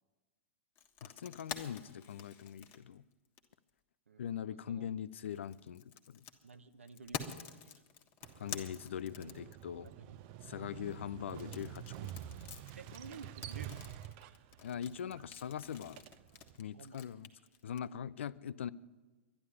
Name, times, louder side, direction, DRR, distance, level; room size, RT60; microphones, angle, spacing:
sound 1, 0.7-3.7 5.1-9.9 11.3-17.8, left 7 dB, 35° left, 1.4 m, -48 dB
voice 1, 1.0-3.0 4.2-6.2 8.4-9.9 10.4-12.1 14.6-16.0 16.6-17.3 17.6-18.7, left 9 dB, 65° left, 0.5 m, -42 dB
voice 2, 4.1-4.9 6.4-7.8 9.8-10.2 12.7-13.9 16.7-17.0, right 4 dB, 75° right, 0.9 m, -53 dB
Motorcycle, 8.2-16.6, right 12 dB, 45° right, 0.6 m, -49 dB
11.5 x 11.0 x 9.7 m
figure-of-eight pair, 100°, 7 cm